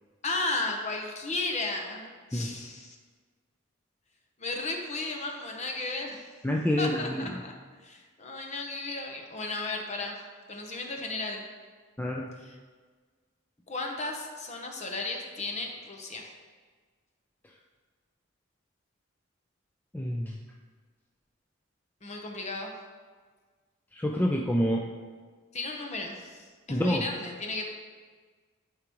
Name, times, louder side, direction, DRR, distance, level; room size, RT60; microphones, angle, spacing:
voice 1, 0.2-2.9 4.4-6.2 6.8-7.5 7.8-10.2 10.5-11.4 12.4-12.6 13.7-16.2 22.0-22.7 25.5-27.6, left 2 dB, 35° left, 2 dB, 0.9 m, -34 dB
voice 2, 6.4-7.2 12.0-12.3 19.9-20.4 23.9-24.9 26.7-27.0, equal, 10° left, -1 dB, 0.4 m, -27 dB
11.5 x 4.8 x 3.0 m, 1.5 s
head